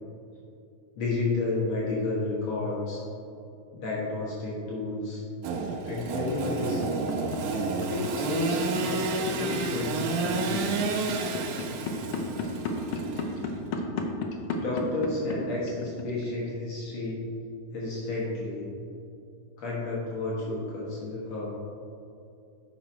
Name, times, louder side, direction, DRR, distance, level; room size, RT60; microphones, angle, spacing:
voice 1, 1.0-3.0 3.7-5.2 5.8-7.0 7.8-10.8 14.6-17.2 17.7-18.6 19.6-21.5, left 2 dB, 60° left, -6 dB, 2.5 m, -31 dB
Engine / Sawing, 5.4-13.7, right 4 dB, 90° right, 2.3 m, -31 dB
sound 1, 6.4-16.5, left 5 dB, 90° left, 1.1 m, -33 dB
9.5 x 6.1 x 4.3 m, 2.5 s
omnidirectional pair, 3.6 m